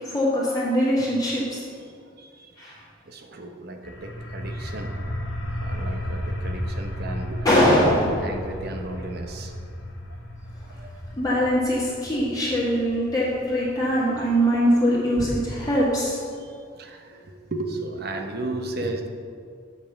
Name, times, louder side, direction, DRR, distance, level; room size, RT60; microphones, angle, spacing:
voice 1, 0.0-1.6 2.6-2.7 7.4-8.1 11.2-16.2, equal, 20° left, -7 dB, 1.7 m, -22 dB
voice 2, 1.8-2.8 3.1-4.9 5.6-7.5 7.8-9.6 10.8-11.0 16.4-19.1, right 2 dB, 50° right, 5 dB, 0.8 m, -34 dB
sound 1, 3.8-15.3, equal, 85° left, 1.5 m, -34 dB
7.5 x 5.4 x 6.6 m, 2.2 s
head